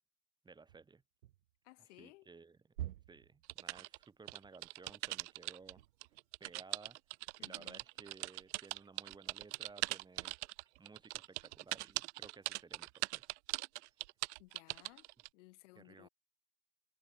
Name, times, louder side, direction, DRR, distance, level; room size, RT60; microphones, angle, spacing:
voice 1, 0.4-1.0 1.8-2.6 3.1-5.8 6.4-7.0 7.4-10.4 10.8-13.2 13.8-13.9 15.8-16.1, right 4 dB, 10° right, 1.8 m, -57 dB
sound 1, 0.7-1.6 2.0-2.3 2.7-4.2 5.5-6.6 7.4-8.7, right 13 dB, 80° right, 1.4 m, -50 dB
voice 2, 1.6-2.3 7.4-7.8 14.4-15.1 15.3-16.1, left 22 dB, 55° left, 2.3 m, -59 dB
sound 2, 3.5-5.7 6.0-15.3, right 22 dB, 55° right, 0.5 m, -41 dB
hypercardioid pair, 120°, 42 cm